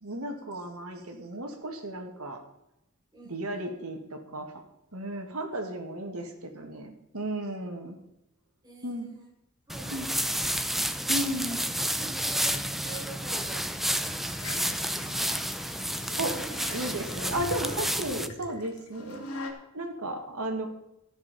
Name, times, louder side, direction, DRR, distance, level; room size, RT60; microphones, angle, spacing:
voice 1, 0.0-2.4 3.3-4.6 4.9-8.0 8.8-9.1 9.9-10.1 11.1-11.6 16.2-16.4 16.7-19.3 19.7-20.7, right 1 dB, 80° right, 4 dB, 2.0 m, -34 dB
voice 2, 3.1-3.8 4.3-4.4 7.6-7.7 8.6-9.3 9.7-10.3 11.3-11.6 11.9-15.1 16.0-16.6 17.1-17.2 17.6-17.9 18.4-18.5, right 2 dB, 20° right, -3 dB, 4.1 m, -47 dB
sound 1, 9.7-18.3, equal, ahead, 0.5 m, -30 dB
sound 2, 14.3-19.5, left 2 dB, 80° left, 1.8 m, -42 dB
13.5 x 6.8 x 5.4 m, 0.88 s
head